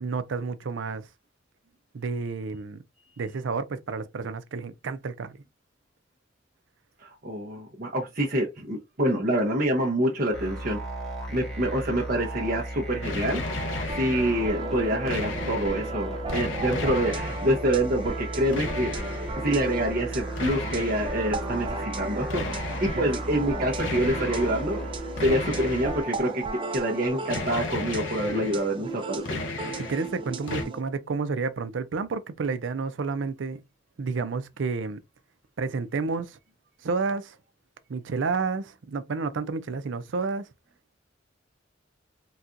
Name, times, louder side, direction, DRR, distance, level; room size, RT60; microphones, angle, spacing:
voice 1, 0.0-1.1 1.9-2.8 3.2-5.4 22.9-23.1 28.2-28.5 29.8-33.6 34.0-35.0 35.6-36.4 36.8-37.4 37.9-40.5, right 4 dB, 80° right, 0.5 m, -30 dB
voice 2, 7.0-10.8 11.3-13.6 13.9-19.0 19.4-22.4 22.8-24.8 25.2-26.4 26.7-29.4, right 1 dB, 50° right, 0.8 m, -26 dB
sound 1, 10.3-26.0, right 1 dB, ahead, 1.1 m, -35 dB
sound 2, 13.0-14.5 14.8-15.9 16.3-17.6 18.5-19.4 20.4-21.2 22.3-23.1 23.8-24.6 25.2-26.3 27.3-28.7 29.0-30.1 30.5-30.6, left 3 dB, 90° left, 0.6 m, -34 dB
sound 3, 13.9-30.8, right 3 dB, 25° right, 0.4 m, -36 dB
4.1 x 2.3 x 2.5 m
head